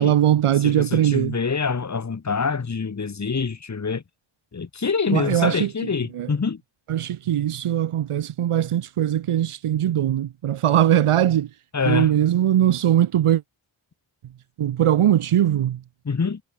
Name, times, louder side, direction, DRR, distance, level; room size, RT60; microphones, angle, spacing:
voice 1, 0.0-1.3 5.1-5.7 6.1-6.3 6.9-11.5 11.9-13.4 14.6-15.8, right 11 dB, 80° right, 1.1 m, -20 dB
voice 2, 0.6-4.0 4.5-6.6 11.7-12.1 16.0-16.4, left 5 dB, 35° left, 1.7 m, -25 dB
wide cardioid pair, 115°, 50 cm